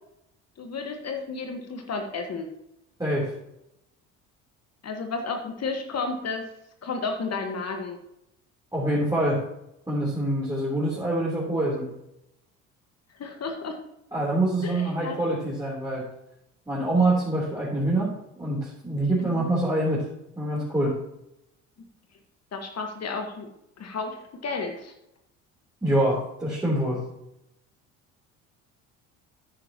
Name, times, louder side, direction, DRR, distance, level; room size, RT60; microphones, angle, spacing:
voice 1, 0.6-2.5 4.8-6.5 6.8-8.0 13.2-13.8 14.6-15.2 19.2-19.5 22.5-23.5 23.8-24.9, left 4 dB, 40° left, 4 dB, 1.6 m, -32 dB
voice 2, 3.0-3.4 8.7-9.4 9.9-11.9 14.1-16.0 16.7-20.1 20.4-21.0 25.8-27.0, right 1 dB, 10° right, -7 dB, 3.6 m, -25 dB
10.0 x 9.4 x 3.0 m, 0.84 s
hypercardioid pair, 60°, 38 cm